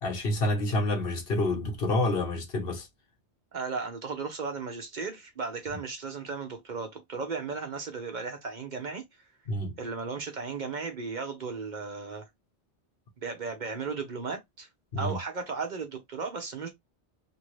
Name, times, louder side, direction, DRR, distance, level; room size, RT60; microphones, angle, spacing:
voice 1, 0.0-2.9 9.5-9.8 14.9-15.2, left 1 dB, 60° left, 1.1 m, -28 dB
voice 2, 3.5-9.0 9.8-12.2 13.2-14.7 15.0-16.7, right 4 dB, 50° right, 0.8 m, -35 dB
2.7 x 2.6 x 3.0 m
omnidirectional pair, 1.1 m